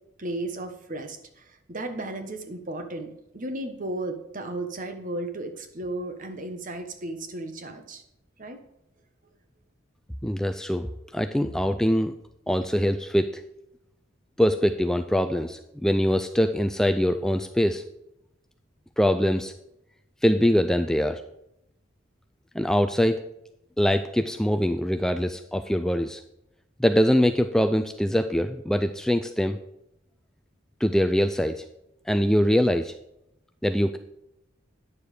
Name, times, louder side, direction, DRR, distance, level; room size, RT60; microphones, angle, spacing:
voice 1, 0.2-8.0 8.4-8.6, right 2 dB, 40° right, 7 dB, 1.2 m, -34 dB
voice 2, 10.2-12.1 12.5-13.3 14.4-17.8 19.0-19.5 20.2-21.2 22.5-23.2 23.8-26.2 26.8-29.6 30.8-31.6 32.1-32.9 33.6-34.0, equal, 5° left, 8 dB, 0.3 m, -23 dB
9.9 x 7.0 x 4.9 m, 0.82 s
head